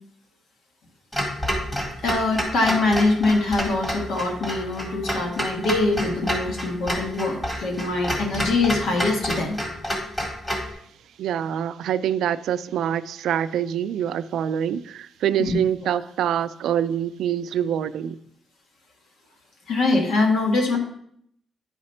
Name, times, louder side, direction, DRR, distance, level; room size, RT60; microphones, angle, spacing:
Clock, 1.1-10.7, equal, 15° left, 1.8 m, -29 dB
voice 1, 2.0-9.6 15.4-15.6 19.7-20.8, left 2 dB, 80° left, 1.6 m, -23 dB
voice 2, 11.2-18.2, right 9 dB, 85° right, 0.3 m, -25 dB
9.5 x 5.0 x 4.3 m
cardioid pair, 110°, 0 cm